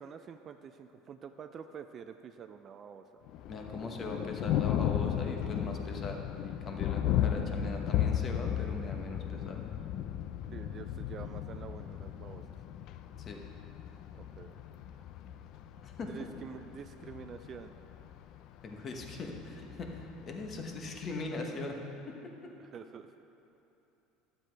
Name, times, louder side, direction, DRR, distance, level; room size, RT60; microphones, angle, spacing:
voice 1, 0.0-3.0 10.5-12.5 14.1-14.8 16.0-17.7 22.6-23.2, right 7 dB, 30° right, 8 dB, 0.3 m, -47 dB
Thunder, 3.3-21.2, left 10 dB, 50° left, 0.4 m, -35 dB
voice 2, 3.5-6.2 6.4-9.6 13.2-13.4 15.8-16.1 18.6-21.8 22.1-22.2 22.4-22.5, left 3 dB, 30° left, 2 dB, 1.0 m, -40 dB
12.0 x 7.8 x 4.5 m, 3.0 s
cardioid pair, 155°, 0 cm